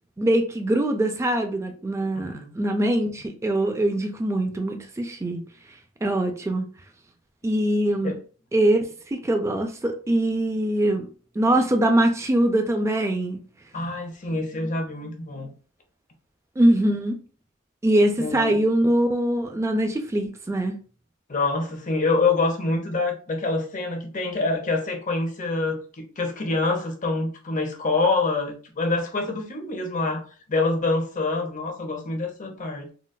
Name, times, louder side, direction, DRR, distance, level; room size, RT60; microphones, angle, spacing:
voice 1, 0.2-5.4 6.0-6.6 7.4-8.1 8.5-11.1 11.4-13.4 16.6-17.2 17.8-20.8, right 1 dB, 15° right, 0.3 m, -23 dB
voice 2, 2.1-2.5 8.0-8.2 13.7-15.5 18.2-18.6 21.3-30.2 30.5-32.9, left 3 dB, 40° left, 0.8 m, -26 dB
3.9 x 2.3 x 2.2 m
head